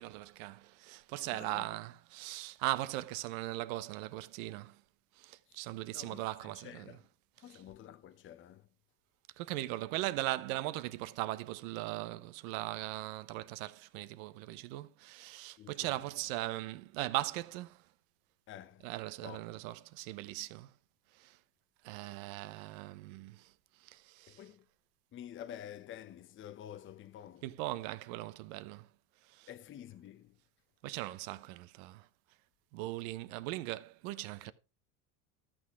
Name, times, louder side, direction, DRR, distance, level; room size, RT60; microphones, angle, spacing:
voice 1, 0.0-4.8 5.1-7.0 7.5-7.6 9.4-17.9 18.8-20.7 21.1-21.4 21.8-24.4 27.4-28.9 29.2-29.5 30.8-32.1 32.7-34.5, right 17 dB, 70° right, 1.0 m, -39 dB
voice 2, 1.3-1.7 5.5-5.6 5.9-7.0 7.4-8.7 15.6-16.0 18.5-18.9 19.2-19.4 24.3-24.6 25.1-27.4 29.5-30.4, left 10 dB, 30° left, 0.8 m, -49 dB
13.5 x 6.3 x 4.8 m
supercardioid pair, 120°, 41 cm